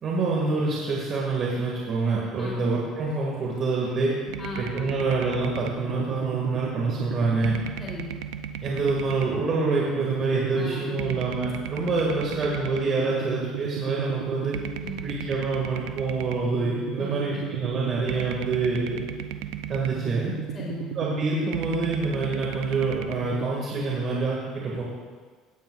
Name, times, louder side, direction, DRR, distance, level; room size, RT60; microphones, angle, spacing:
voice 1, 0.0-4.1 4.6-7.6 8.6-14.6 15.0-19.0 19.7-20.3 21.0-24.8, right 3 dB, 50° right, -3 dB, 2.2 m, -26 dB
sound 1, 4.3-23.5, right 9 dB, 80° right, 0.6 m, -35 dB
voice 2, 4.4-5.0 7.8-8.2 10.5-11.2 11.8-12.5 14.8-15.2 17.0-17.5 20.5-20.9, left 2 dB, 25° left, -6 dB, 3.4 m, -38 dB
17.5 x 9.1 x 2.5 m, 1.5 s
supercardioid pair, 90°, 0 cm